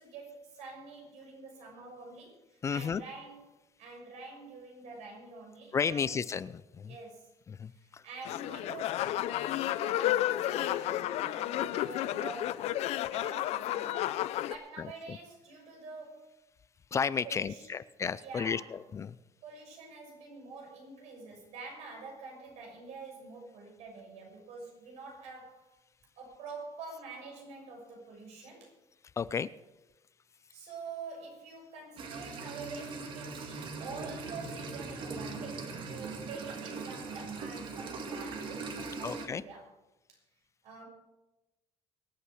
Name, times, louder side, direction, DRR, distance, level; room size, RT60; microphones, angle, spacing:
voice 1, 0.0-3.4 3.8-6.1 6.9-7.3 7.7-12.7 13.1-16.3 17.2-17.7 18.2-18.7 19.4-25.7 26.2-28.7 30.5-39.7 40.1-40.2 40.6-40.9, right 4 dB, 75° right, 0 dB, 6.2 m, -46 dB
voice 2, 2.6-3.0 5.7-7.0 7.5-8.0 14.8-15.2 16.9-19.2 29.2-29.5 39.0-39.4, left 6 dB, 25° left, 17 dB, 0.4 m, -33 dB
sound 1, 8.2-14.5, left 13 dB, 70° left, 0.6 m, -32 dB
sound 2, 32.0-39.3, right 4 dB, 45° right, 2.0 m, -40 dB
24.0 x 8.5 x 4.9 m, 1.0 s
cardioid pair, 160°, 11 cm